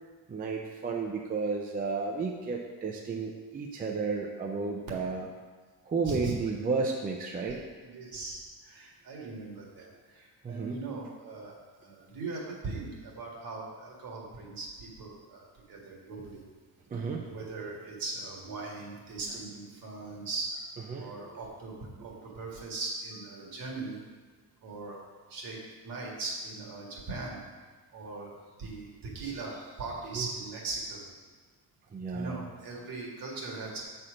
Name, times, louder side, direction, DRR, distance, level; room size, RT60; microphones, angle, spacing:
voice 1, 0.3-5.2 5.8-7.6 10.4-10.8 16.9-17.3 20.9-21.2 23.4-23.6 30.1-30.3 31.9-32.4, right 4 dB, 25° right, 0 dB, 0.5 m, -32 dB
voice 2, 6.0-6.3 7.5-7.6 7.8-16.4 17.2-20.6 21.0-21.7 22.0-24.0 24.6-25.0 25.3-25.6 25.8-27.4 27.9-28.3 28.6-31.0 32.1-33.8, right 3 dB, 65° right, -2 dB, 2.0 m, -39 dB
7.6 x 4.4 x 5.0 m, 1.4 s
cardioid pair, 165°, 38 cm